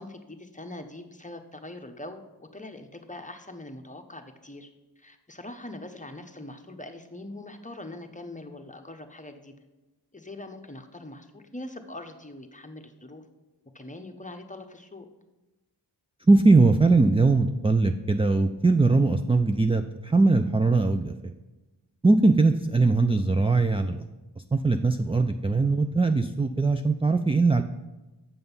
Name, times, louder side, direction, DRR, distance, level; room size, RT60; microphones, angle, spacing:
voice 1, 0.0-4.7 5.0-9.5 10.1-13.2 13.7-15.1, left 1 dB, 20° left, 6 dB, 0.9 m, -42 dB
voice 2, 16.3-21.3 22.0-24.0 24.5-27.6, right 3 dB, 15° right, 7 dB, 0.4 m, -21 dB
7.6 x 7.0 x 5.5 m, 1.1 s
wide cardioid pair, 60°, 42 cm